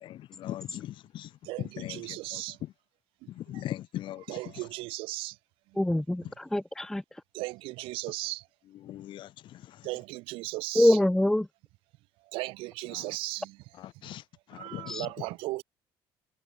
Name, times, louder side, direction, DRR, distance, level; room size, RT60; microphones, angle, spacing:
voice 1, 0.0-1.3 1.6-2.7 3.3-4.4 6.2-6.3 8.8-9.9 12.9-13.1 13.8-14.2 14.5-15.1, left 13 dB, 65° left, 1.9 m, -40 dB
voice 2, 1.4-2.6 3.5-3.6 4.3-5.4 5.7-5.8 7.3-8.4 9.8-11.0 12.3-13.6 14.5-15.6, right 21 dB, 90° right, 1.6 m, -36 dB
voice 3, 5.8-7.0 10.8-11.5 14.9-15.1, left 1 dB, 5° left, 0.4 m, -24 dB
cardioid pair, 105°, 9 cm